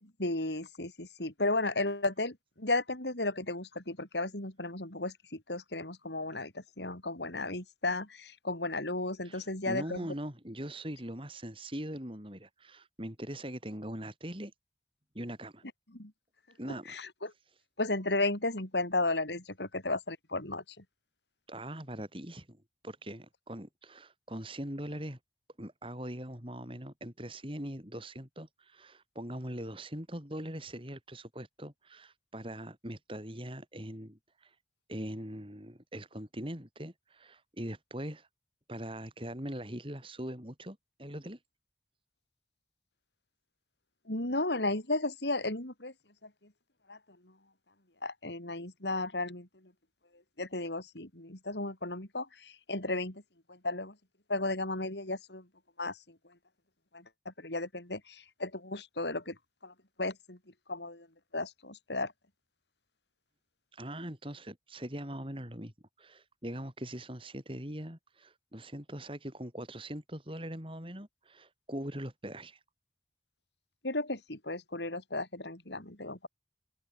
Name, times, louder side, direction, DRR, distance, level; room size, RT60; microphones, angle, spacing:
voice 1, 0.0-10.1 15.9-16.1 16.9-17.3 17.8-20.6 44.1-45.9 46.2-46.3 46.9-47.0 48.0-49.5 50.4-53.2 53.5-54.0 54.3-55.5 55.8-56.2 56.9-59.4 59.6-60.4 60.7-61.1 61.3-62.1 73.8-76.3, left 2 dB, 80° left, 5.3 m, -34 dB
voice 2, 9.2-14.5 15.1-15.6 16.6-17.0 21.5-25.2 25.6-34.6 34.9-38.3 38.7-41.4 63.7-65.7 66.0-72.6, right 1 dB, 30° right, 6.4 m, -41 dB
open air
head